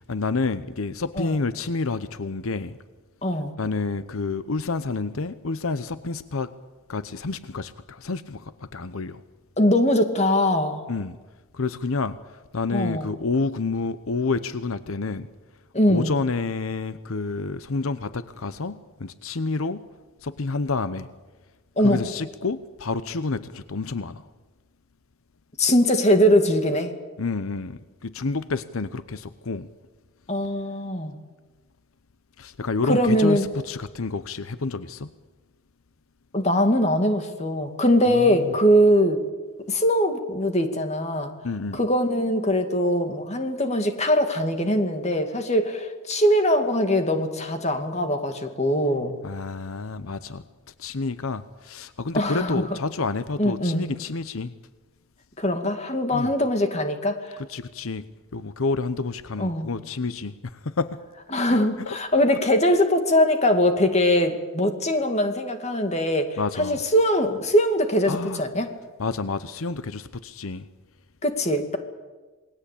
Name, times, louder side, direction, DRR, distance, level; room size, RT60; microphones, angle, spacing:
voice 1, 0.0-2.8 3.6-6.5 6.9-9.2 10.9-11.2 11.5-12.2 12.5-15.3 15.9-19.8 20.2-21.1 21.8-24.2 27.2-29.7 32.4-35.1 38.1-38.5 41.4-41.8 49.2-50.4 50.8-54.5 56.1-56.3 57.5-58.0 58.3-61.0 61.5-61.9 66.4-66.8 68.1-68.4 69.0-70.6, left 3 dB, 80° left, 13 dB, 0.8 m, -29 dB
voice 2, 3.2-3.5 9.6-10.9 12.7-13.1 15.7-16.1 21.8-22.0 25.6-26.9 30.3-31.2 32.8-33.5 36.3-39.2 39.7-41.3 41.7-49.1 52.1-52.6 53.4-53.9 55.4-57.2 59.4-59.7 61.3-68.7 71.2-71.8, equal, 30° left, 6 dB, 2.4 m, -22 dB
28.0 x 20.0 x 8.5 m, 1.3 s
head